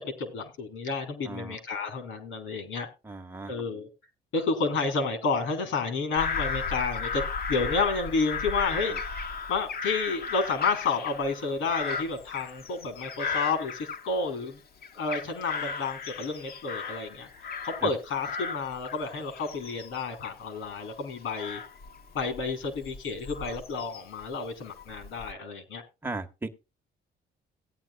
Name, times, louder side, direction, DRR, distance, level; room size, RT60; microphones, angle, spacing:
voice 1, 0.2-2.9 3.5-3.9 4.3-7.2 7.5-8.9 9.5-14.6 14.9-21.6 22.1-25.8, left 4 dB, 80° left, 6 dB, 3.2 m, -30 dB
voice 2, 1.2-1.6 3.0-3.5 8.9-9.0 17.8-17.9 26.0-26.5, right 2 dB, 10° right, 3 dB, 1.3 m, -36 dB
Bird vocalization bird call bird song / Crow, 6.1-14.5 14.8-17.9 18.2-24.2 24.8-25.3, left 5 dB, 50° left, 1.2 m, -36 dB
17.5 x 9.4 x 2.3 m, 0.27 s
cardioid pair, 90°, 20 cm